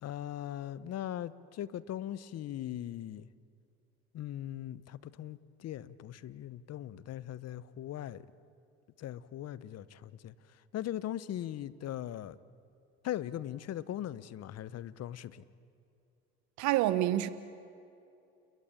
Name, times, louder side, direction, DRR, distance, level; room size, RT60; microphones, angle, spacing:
voice 1, 0.0-3.3 4.1-8.3 9.0-10.3 10.7-12.4 13.0-15.4, left 12 dB, 55° left, 1.1 m, -40 dB
voice 2, 16.6-17.3, right 14 dB, 70° right, 1.1 m, -27 dB
29.5 x 22.0 x 8.9 m
hypercardioid pair, 65°, 30 cm